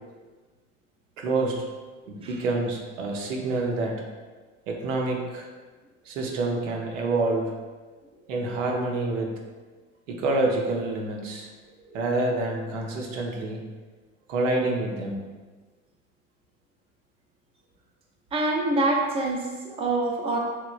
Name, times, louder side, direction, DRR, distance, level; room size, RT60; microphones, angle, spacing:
voice 1, 1.2-1.7 2.1-4.0 4.7-5.5 6.1-7.5 8.3-9.3 10.1-11.5 11.9-13.6 14.3-15.2, right 2 dB, 85° right, 0 dB, 0.6 m, -27 dB
voice 2, 18.3-20.4, right 2 dB, 15° right, -1 dB, 0.4 m, -26 dB
3.0 x 2.1 x 2.3 m, 1.4 s
hypercardioid pair, 75°, 37 cm